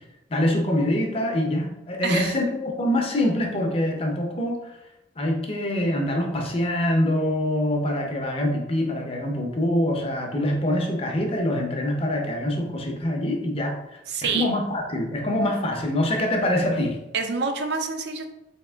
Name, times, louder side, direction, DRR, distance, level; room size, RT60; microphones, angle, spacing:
voice 1, 0.3-4.8 5.2-13.8 14.2-17.0, left 1 dB, 30° left, 2 dB, 0.6 m, -24 dB
voice 2, 2.0-2.4 14.1-14.5 17.1-18.3, right 4 dB, 60° right, 5 dB, 0.4 m, -27 dB
3.5 x 2.8 x 3.3 m, 0.92 s
head